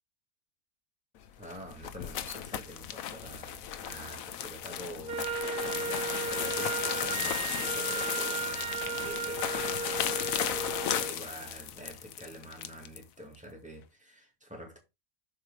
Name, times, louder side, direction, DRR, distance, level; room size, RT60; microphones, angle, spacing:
sound 1, 1.3-13.0, left 10 dB, 85° left, 1.2 m, -35 dB
voice 1, 1.4-14.8, equal, 5° right, 2.3 m, -46 dB
Wind instrument woodwind instrument, 5.1-11.2, right 6 dB, 50° right, 0.7 m, -35 dB
7.4 x 4.8 x 4.8 m
omnidirectional pair, 1.4 m